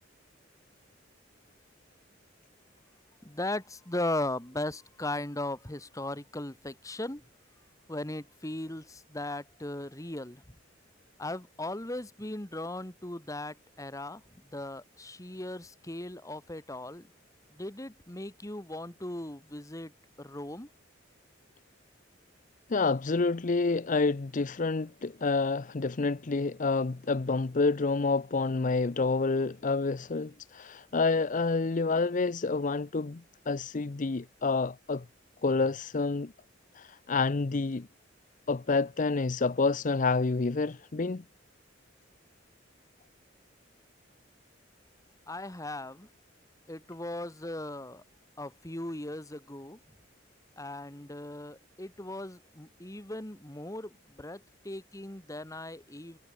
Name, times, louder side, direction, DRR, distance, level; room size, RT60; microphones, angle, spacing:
voice 1, 3.2-7.2 7.9-10.4 11.2-14.2 14.5-17.1 17.5-19.9 20.2-20.7 45.3-46.1 46.7-48.0 48.4-49.8 50.6-56.2, left 1 dB, 15° left, 1.9 m, -38 dB
voice 2, 22.7-35.0 35.4-36.3 36.7-37.9 38.5-41.2, left 3 dB, 40° left, 0.6 m, -28 dB
head